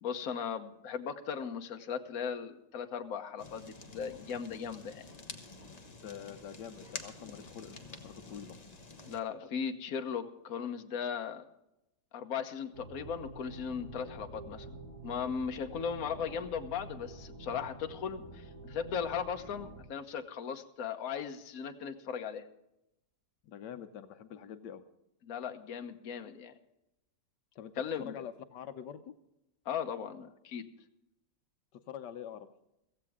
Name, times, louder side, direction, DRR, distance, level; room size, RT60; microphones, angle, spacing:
voice 1, 0.0-5.0 9.1-11.5 12.1-14.8 15.0-22.5 25.3-26.5 27.8-28.1 29.6-30.7, left 7 dB, 60° left, 6 dB, 1.4 m, -37 dB
Fire, 3.4-9.2, left 3 dB, 25° left, 1.1 m, -49 dB
voice 2, 6.0-8.6 16.1-16.4 23.4-24.8 27.5-27.7 28.0-29.1 31.7-32.5, left 9 dB, 85° left, 10 dB, 1.4 m, -46 dB
sound 1, 12.7-19.8, right 2 dB, 40° right, 2.7 m, -48 dB
16.0 x 15.5 x 3.6 m, 0.88 s
omnidirectional pair, 1.8 m